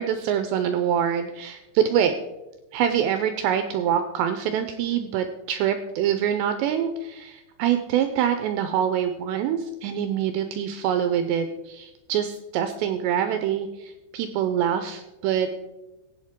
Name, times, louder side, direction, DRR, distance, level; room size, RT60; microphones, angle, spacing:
voice 1, 0.0-2.1 2.7-15.5, right 9 dB, 85° right, 8 dB, 2.5 m, -25 dB
16.0 x 8.5 x 3.6 m, 1.0 s
omnidirectional pair, 5.6 m